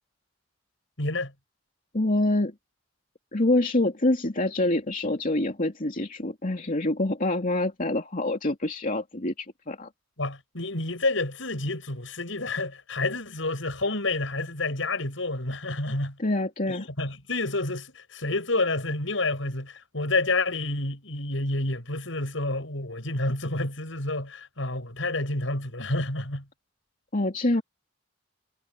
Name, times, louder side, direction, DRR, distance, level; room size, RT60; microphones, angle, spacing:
voice 1, 1.0-1.3 10.2-16.2 16.7-26.5, left 2 dB, 80° left, 7.4 m, -29 dB
voice 2, 1.9-2.5 3.3-9.9 16.2-16.8 27.1-27.6, left 2 dB, 45° left, 2.7 m, -26 dB
head